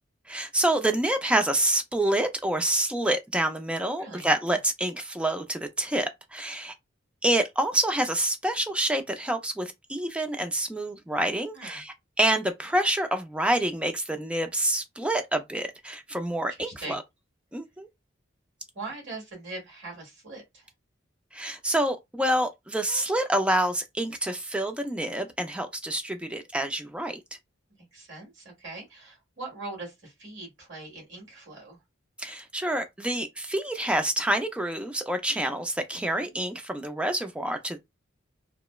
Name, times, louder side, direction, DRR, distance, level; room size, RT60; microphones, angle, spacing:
voice 1, 0.3-6.7 7.2-17.0 17.5-17.9 21.3-27.2 32.2-37.8, right 1 dB, 5° right, 0.3 m, -27 dB
voice 2, 3.9-4.3 11.5-11.8 16.6-17.0 18.7-20.7 27.9-31.8 36.0-36.3, right 2 dB, 60° right, 1.6 m, -41 dB
2.9 x 2.0 x 2.3 m
head